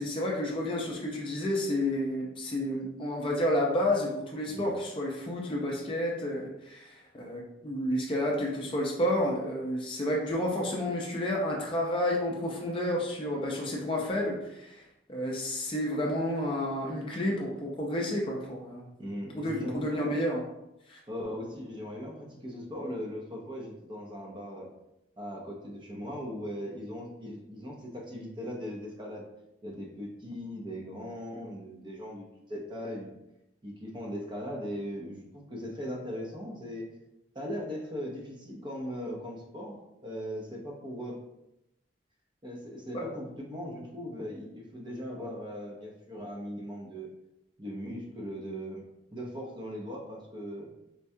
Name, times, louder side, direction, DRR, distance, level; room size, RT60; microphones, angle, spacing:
voice 1, 0.0-14.8 15.1-18.9 19.3-20.4 20.9-21.0 42.9-43.1, left 1 dB, 25° left, -2 dB, 0.4 m, -30 dB
voice 2, 19.0-20.2 21.1-24.7 25.2-29.3 29.6-33.1 33.6-36.8 37.3-41.2 42.4-47.1 47.6-48.8 49.1-50.7, equal, 25° right, -1 dB, 0.5 m, -39 dB
4.4 x 2.2 x 2.6 m, 0.89 s
head